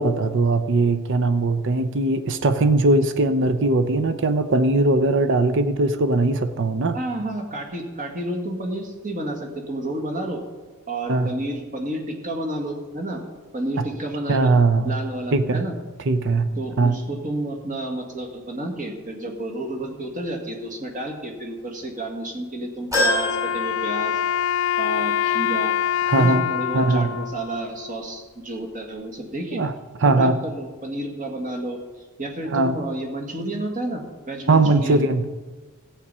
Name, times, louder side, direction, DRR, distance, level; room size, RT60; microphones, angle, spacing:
voice 1, 0.0-7.0 11.1-11.3 14.3-14.9 15.3-15.6 16.1-16.5 16.8-16.9 26.1-26.5 26.7-27.1 29.5-29.7 30.0-30.4 32.5-32.8 34.5-35.3, right 2 dB, 60° right, 10 dB, 0.7 m, -20 dB
voice 2, 6.9-10.4 10.9-13.2 13.5-14.5 14.8-15.8 16.6-24.2 24.8-25.7 26.2-29.6 30.0-31.8 32.2-35.0, right 1 dB, 40° right, 2 dB, 1.8 m, -30 dB
sound 1, 22.9-24.6 25.0-25.1 26.3-26.4, left 1 dB, 15° right, 5.2 m, -26 dB
Wind instrument woodwind instrument, 23.0-28.2, left 9 dB, 65° left, 0.3 m, -25 dB
14.5 x 8.7 x 5.5 m, 1.3 s
head